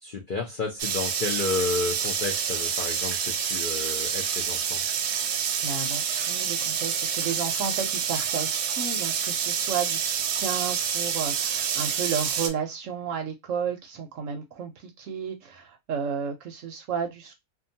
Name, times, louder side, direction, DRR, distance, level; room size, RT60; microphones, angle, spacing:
voice 1, 0.0-4.8, left 4 dB, 80° left, 0.4 m, -31 dB
sound 1, 0.8-12.5, right 7 dB, 90° right, 1.1 m, -28 dB
voice 2, 5.2-17.3, right 6 dB, 70° right, 0.8 m, -33 dB
2.7 x 2.2 x 2.6 m
omnidirectional pair, 1.7 m